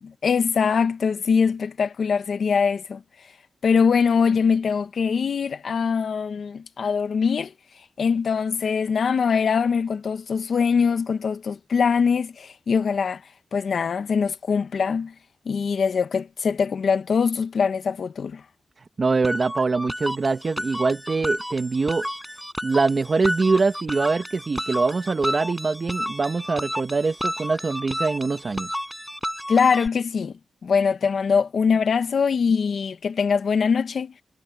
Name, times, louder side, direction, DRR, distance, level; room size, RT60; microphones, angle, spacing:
voice 1, 0.0-3.0 3.6-7.5 8.0-13.2 13.5-15.1 15.4-18.4 29.5-30.3 30.6-34.1, left 6 dB, 70° left, 1.4 m, -22 dB
voice 2, 18.8-22.1 22.6-28.7, right 4 dB, 45° right, 1.3 m, -23 dB
sound 1, 19.2-29.9, equal, ahead, 4.7 m, -32 dB
wide cardioid pair, 95°, 0 cm